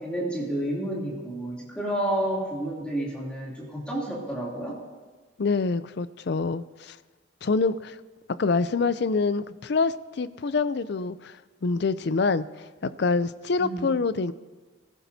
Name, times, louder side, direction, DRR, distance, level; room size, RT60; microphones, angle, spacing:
voice 1, 0.0-4.8 13.6-13.9, right 1 dB, 5° left, -5 dB, 2.8 m, -30 dB
voice 2, 5.4-7.0 7.4-8.0 8.4-11.4 11.6-12.4 12.8-14.3, left 4 dB, 55° left, 15 dB, 0.4 m, -26 dB
22.5 x 14.5 x 2.8 m, 1.3 s
head